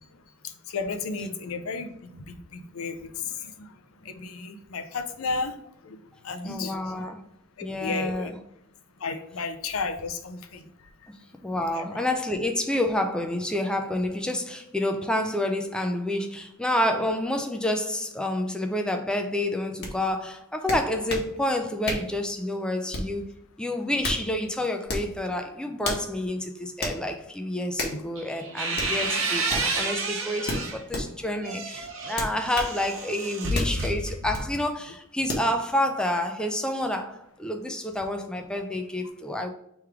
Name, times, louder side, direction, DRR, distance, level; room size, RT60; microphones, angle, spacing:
voice 1, 0.4-3.7 4.0-5.6 5.8-6.0 6.2-7.0 7.6-8.3 9.0-10.7 11.7-12.1 27.9-28.0, left 4 dB, 90° left, 0.6 m, -33 dB
voice 2, 6.4-7.2 7.6-8.4 11.1-11.2 11.4-23.3 23.6-39.5, left 1 dB, 5° left, 0.4 m, -29 dB
sound 1, 19.8-19.9 20.7-21.3 21.8-22.1 22.9-23.2 23.8-24.2 24.8-25.1 25.8-26.1 26.8-27.0 27.8-28.0 28.7-28.9 29.5-29.7 30.5-31.1 32.1-32.7 33.5-33.8 34.3-34.5 35.3-35.5, left 1 dB, 50° left, 1.1 m, -31 dB
sound 2, 28.1-30.8 31.3-34.6, right 2 dB, 70° right, 0.9 m, -30 dB
3.5 x 3.1 x 4.7 m
head